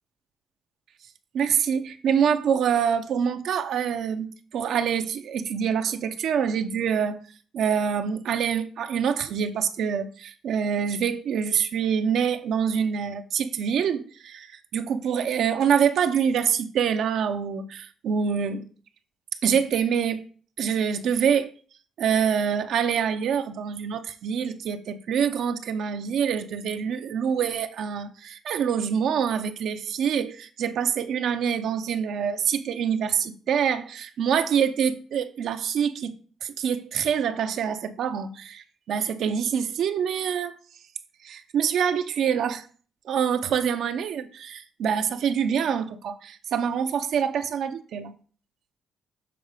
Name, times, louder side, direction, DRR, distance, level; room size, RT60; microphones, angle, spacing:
voice 1, 1.3-7.2 7.5-18.7 19.4-20.2 20.6-21.5 22.0-36.1 36.4-40.5 41.2-42.7 43.0-48.1, right 7 dB, 75° right, 0.6 m, -25 dB
6.8 x 3.9 x 4.9 m
cardioid pair, 90°, 0 cm